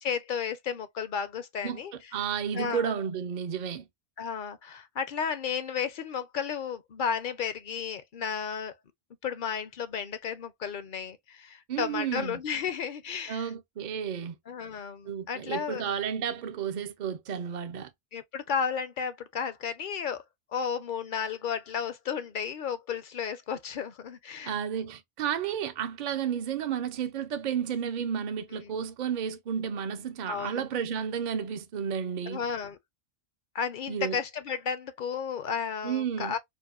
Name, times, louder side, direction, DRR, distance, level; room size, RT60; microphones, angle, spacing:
voice 1, 0.0-1.9 2.5-2.9 4.2-8.7 9.2-13.5 14.5-15.9 18.1-20.2 20.5-24.5 28.5-28.6 30.3-30.6 32.3-32.8 33.5-36.4, left 7 dB, 60° left, 0.6 m, -33 dB
voice 2, 2.1-3.9 11.7-12.4 13.3-14.4 15.0-17.9 24.4-32.4 33.9-34.2 35.8-36.3, right 8 dB, 55° right, 0.5 m, -32 dB
4.6 x 2.1 x 2.4 m
omnidirectional pair, 1.1 m